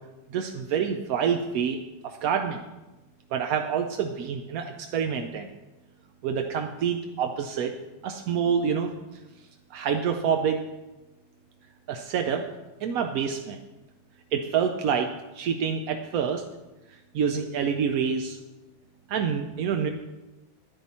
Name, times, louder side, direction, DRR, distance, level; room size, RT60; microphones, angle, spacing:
voice 1, 0.3-2.6 3.3-5.5 6.2-7.8 8.0-8.9 9.7-10.6 11.9-12.5 12.8-13.6 14.3-16.5 17.1-18.4 19.1-19.9, right 7 dB, 65° right, 5 dB, 0.9 m, -27 dB
10.5 x 10.0 x 4.2 m, 1.1 s
omnidirectional pair, 2.0 m